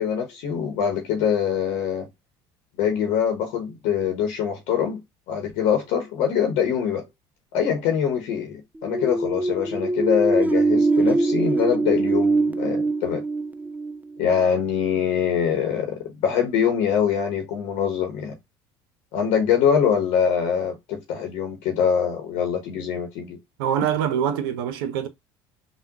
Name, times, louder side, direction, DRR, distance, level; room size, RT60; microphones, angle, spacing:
voice 1, 0.0-2.1 2.8-5.0 5.3-7.1 7.5-13.2 14.2-18.4 19.1-23.4, left 8 dB, 70° left, 0.9 m, -24 dB
sound 1, 8.8-14.4, right 2 dB, 15° right, 0.3 m, -22 dB
voice 2, 23.6-25.1, right 9 dB, 80° right, 0.6 m, -24 dB
3.5 x 2.2 x 2.8 m
hypercardioid pair, 80°, 12 cm